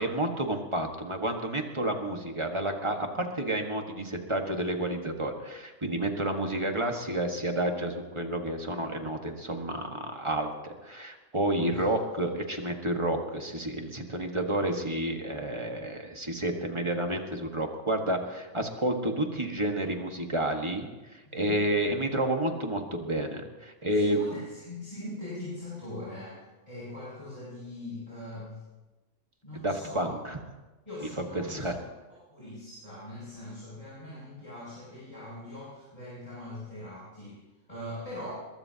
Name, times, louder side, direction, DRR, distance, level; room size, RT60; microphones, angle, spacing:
voice 1, 0.0-20.9 21.1-24.4 29.5-30.4 31.3-31.7, right 1 dB, 25° right, 3 dB, 1.6 m, -30 dB
voice 2, 21.3-21.7 23.9-28.6 29.4-30.2 30.9-37.4 37.7-38.4, left 1 dB, 30° left, -9 dB, 7.3 m, -41 dB
22.5 x 21.0 x 2.9 m, 1.2 s
omnidirectional pair, 1.3 m